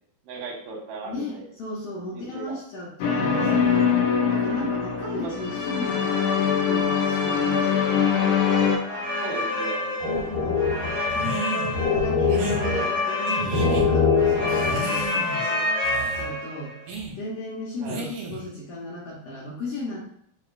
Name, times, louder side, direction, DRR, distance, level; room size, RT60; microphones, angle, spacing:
voice 1, 0.2-1.5 2.1-2.6 5.1-5.3 6.0-6.1 6.9-7.1 7.8-8.0 9.2-10.0 17.8-18.1, right 3 dB, 85° right, -1 dB, 2.6 m, -37 dB
voice 2, 1.0-3.9 4.3-8.3 10.1-10.8 11.1-15.6 16.1-16.8 17.2-20.1, left 1 dB, 70° left, -5 dB, 1.6 m, -36 dB
sound 1, 3.0-8.8, left 7 dB, 90° left, 1.3 m, -23 dB
sound 2, 8.8-16.7, left 4 dB, 20° left, 1.3 m, -24 dB
sound 3, 11.1-11.7 12.3-12.6 13.3-13.8 14.5-15.4 15.8-16.3 16.9-17.1 17.9-18.5, right 2 dB, 70° right, 2.1 m, -33 dB
6.3 x 3.0 x 2.5 m, 0.68 s
omnidirectional pair, 3.6 m